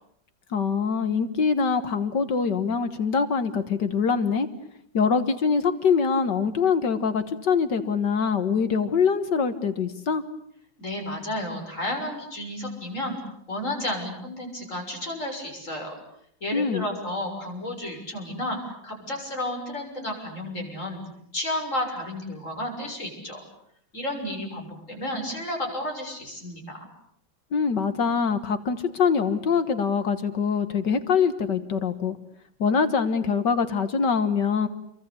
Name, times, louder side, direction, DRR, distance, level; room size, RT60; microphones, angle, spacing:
voice 1, 0.5-4.5 4.9-10.2 16.5-16.9 27.5-32.2 32.6-34.7, left 5 dB, 65° left, 10 dB, 2.0 m, -24 dB
voice 2, 10.8-13.1 13.5-15.9 16.4-21.0 21.3-23.4 23.9-26.9, left 1 dB, 40° left, 2 dB, 7.2 m, -32 dB
29.5 x 23.5 x 8.5 m, 0.71 s
omnidirectional pair, 2.1 m